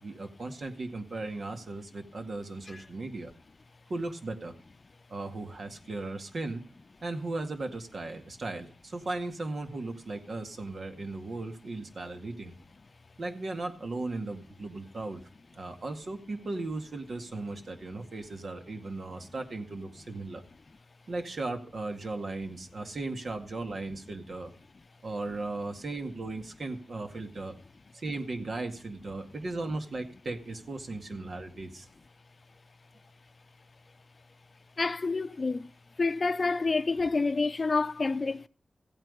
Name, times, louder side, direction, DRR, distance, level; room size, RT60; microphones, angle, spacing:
voice 1, 0.0-3.3 3.9-4.5 5.1-6.6 7.0-12.6 13.2-15.2 15.5-20.4 21.1-24.5 25.0-27.5 27.9-31.9, right 2 dB, 65° right, 2.1 m, -37 dB
voice 2, 34.8-35.7 36.0-38.5, left 3 dB, 50° left, 0.6 m, -28 dB
15.5 x 9.0 x 5.2 m
cardioid pair, 60°, 0 cm